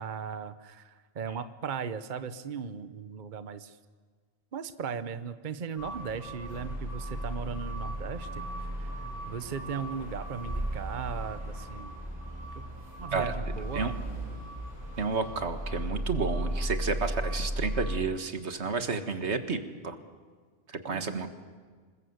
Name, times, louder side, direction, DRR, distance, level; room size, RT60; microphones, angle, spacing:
voice 1, 0.0-3.8 4.5-8.4 8.8-8.9 9.3-11.9 12.6-12.7 13.0-14.0 20.9-21.3, right 6 dB, 50° right, 12 dB, 1.0 m, -37 dB
sound 1, 5.8-18.0, right 1 dB, 15° right, 8.0 m, -36 dB
voice 2, 15.0-20.0 20.7-21.3, right 4 dB, 90° right, 8 dB, 1.9 m, -31 dB
26.5 x 21.0 x 8.1 m, 1.5 s
omnidirectional pair, 1.1 m